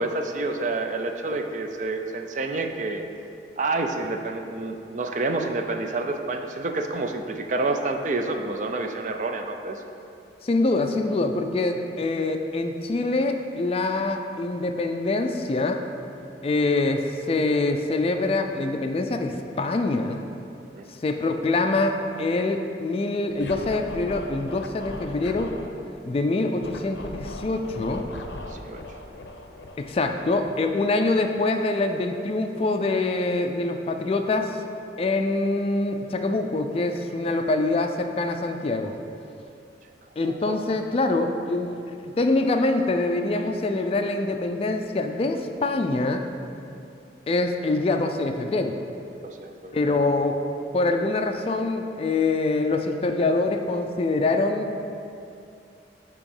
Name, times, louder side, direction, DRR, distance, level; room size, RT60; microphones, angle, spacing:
voice 1, 0.0-3.0 3.6-9.8 20.7-20.9 28.5-28.8 40.5-40.6 49.2-50.0, right 2 dB, 45° right, 5 dB, 0.4 m, -28 dB
voice 2, 10.4-15.8 16.4-20.2 20.9-25.5 26.0-28.1 29.8-34.6 35.0-38.9 40.2-41.8 42.2-46.2 47.3-48.8 49.7-50.4 50.7-54.7, left 2 dB, 35° left, 5 dB, 0.3 m, -25 dB
Scratching (performance technique), 23.3-25.7 26.6-30.9, left 2 dB, 85° left, 0.5 m, -39 dB
8.4 x 3.0 x 5.4 m, 2.6 s
head